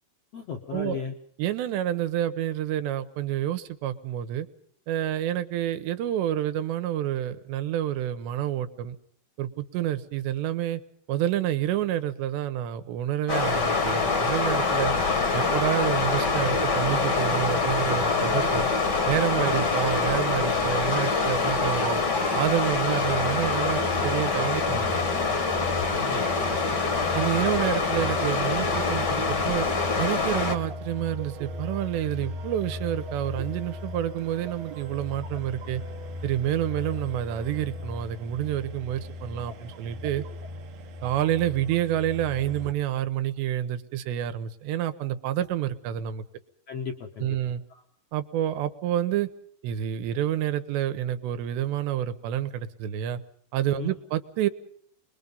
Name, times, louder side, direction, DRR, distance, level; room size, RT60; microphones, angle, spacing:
voice 1, 0.3-1.1 26.0-26.3 46.7-47.4 47.7-47.8 53.8-54.0, left 6 dB, 60° left, 2 dB, 1.7 m, -35 dB
voice 2, 1.4-4.5 4.9-9.0 9.4-10.8 11.1-14.9 15.3-18.7 19.1-22.0 22.3-25.1 27.1-29.7 30.0-35.8 36.2-40.2 41.0-46.2 47.2-47.6 48.1-49.3 49.6-53.2 53.5-54.5, right 12 dB, 90° right, 11 dB, 3.3 m, -28 dB
sound 1, 13.3-30.6, left 4 dB, 45° left, 1.4 m, -25 dB
Speech, 16.5-19.1 19.5-21.0 21.3-23.1, equal, 15° left, 1.0 m, -39 dB
sound 2, 23.0-42.7, left 1 dB, 70° right, 1.6 m, -38 dB
26.0 x 21.5 x 5.4 m, 0.63 s
omnidirectional pair, 4.9 m